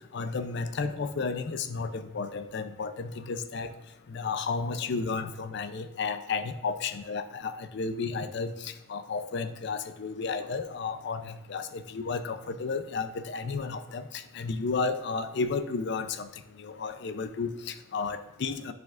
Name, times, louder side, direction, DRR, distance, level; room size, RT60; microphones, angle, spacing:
voice 1, 0.1-3.7 4.1-16.3 16.6-18.7, left 4 dB, 60° left, 10 dB, 0.5 m, -32 dB
9.3 x 5.0 x 2.5 m, 0.85 s
head